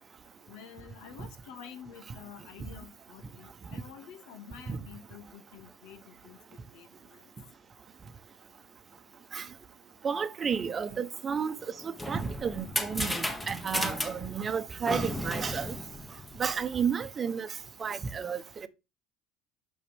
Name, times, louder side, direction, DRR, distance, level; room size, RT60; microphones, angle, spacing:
voice 1, 0.5-6.4 6.7-7.2, left 8 dB, 75° left, 1.7 m, -49 dB
voice 2, 10.0-11.5 12.1-15.7 16.4-17.5 17.8-18.4, right 6 dB, 30° right, 1.0 m, -31 dB
sound 1, 11.7-16.7, left 1 dB, 10° left, 1.3 m, -35 dB
8.5 x 6.5 x 3.5 m
supercardioid pair, 115°, 0 cm